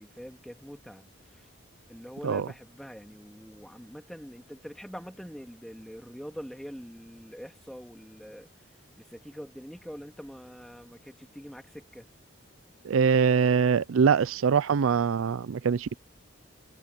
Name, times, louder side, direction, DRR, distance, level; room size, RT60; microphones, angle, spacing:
voice 1, 0.0-1.5 1.9-8.7 9.0-12.1, equal, ahead, 2.0 m, -44 dB
voice 2, 12.8-15.9, right 6 dB, 85° right, 0.4 m, -23 dB
head